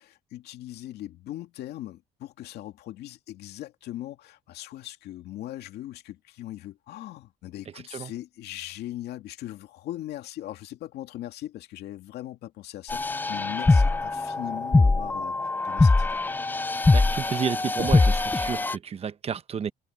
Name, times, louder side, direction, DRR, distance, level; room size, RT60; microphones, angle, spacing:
voice 1, 0.0-16.2, left 14 dB, 75° left, 2.3 m, -39 dB
sound 1, 12.9-18.8, left 3 dB, 10° left, 0.4 m, -22 dB
voice 2, 16.9-19.7, right 7 dB, 35° right, 0.9 m, -31 dB
cardioid pair, 110°, 17 cm